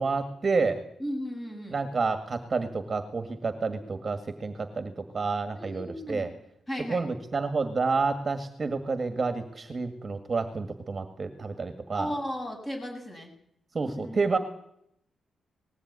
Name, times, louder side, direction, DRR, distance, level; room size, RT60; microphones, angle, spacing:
voice 1, 0.0-0.8 1.7-6.3 6.9-12.1 13.7-14.4, right 4 dB, 30° right, 8 dB, 2.0 m, -29 dB
voice 2, 1.0-1.8 5.5-6.3 6.7-7.0 11.9-13.3 13.9-14.2, equal, 20° left, 2 dB, 7.7 m, -35 dB
20.0 x 17.5 x 9.6 m, 0.72 s
wide cardioid pair, 165°, 0 cm